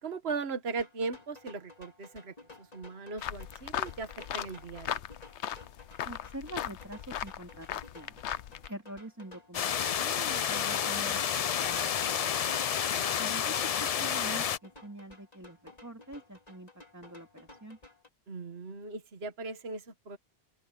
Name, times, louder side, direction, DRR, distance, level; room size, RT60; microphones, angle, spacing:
voice 1, 0.0-5.0 12.9-13.0 18.3-20.2, right 4 dB, 65° right, 1.7 m, -38 dB
sound 1, 0.7-11.0 13.7-18.1, left 2 dB, 35° left, 2.9 m, -54 dB
sound 2, 3.2-8.7, left 11 dB, 85° left, 1.0 m, -38 dB
voice 2, 6.0-8.2 8.7-12.4 13.2-17.8, right 1 dB, 15° right, 2.9 m, -45 dB
sound 3, 9.5-14.6, left 8 dB, 55° left, 0.4 m, -30 dB
open air
omnidirectional pair, 1.1 m